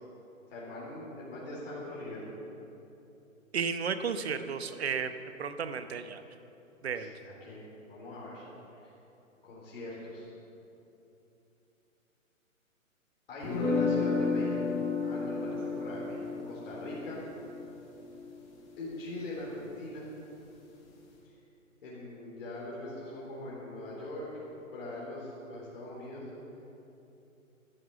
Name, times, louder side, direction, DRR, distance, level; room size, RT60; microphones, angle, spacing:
voice 1, 0.5-2.3 6.9-8.5 8.8-8.9 9.4-10.3 13.3-17.2 18.8-20.1 21.2-21.3 21.8-24.4 24.7-26.2, left 1 dB, 45° left, -7 dB, 3.8 m, -41 dB
voice 2, 3.5-5.1 5.4-6.2 6.8-7.1, right 6 dB, 50° right, 10 dB, 0.9 m, -33 dB
sound 1, 13.4-19.4, left 4 dB, 20° left, 1.9 m, -33 dB
12.5 x 10.5 x 7.0 m, 3.0 s
hypercardioid pair, 170°, 41 cm